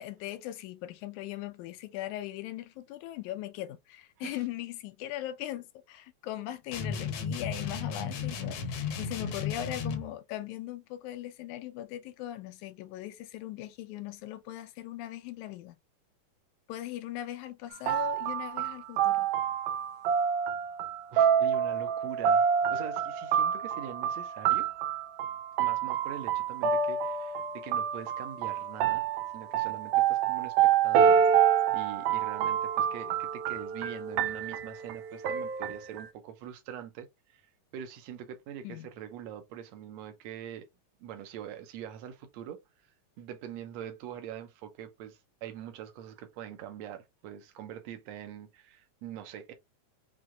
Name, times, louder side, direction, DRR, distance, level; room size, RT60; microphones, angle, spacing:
voice 1, 0.0-15.8 16.7-19.3 38.6-38.9, left 13 dB, 85° left, 2.0 m, -39 dB
sound 1, 6.7-10.1, left 6 dB, 65° left, 1.6 m, -34 dB
sound 2, 17.7-36.1, right 8 dB, 85° right, 2.2 m, -27 dB
voice 2, 21.1-24.7 25.6-29.0 29.3-37.4 37.7-40.7 41.0-42.6 43.2-49.5, right 10 dB, 70° right, 1.9 m, -43 dB
6.2 x 2.8 x 2.3 m
omnidirectional pair, 3.5 m